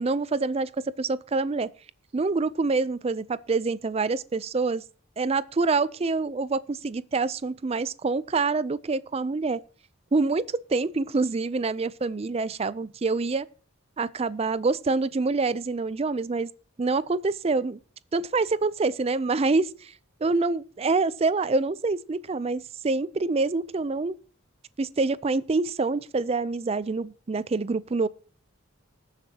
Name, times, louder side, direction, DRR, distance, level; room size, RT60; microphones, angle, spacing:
voice 1, 0.0-1.7 2.1-4.8 5.2-9.6 10.1-13.5 14.0-16.5 16.8-17.8 18.1-19.9 20.2-24.2 24.8-28.1, right 3 dB, 30° right, 0.4 m, -26 dB
19.5 x 7.3 x 2.8 m
head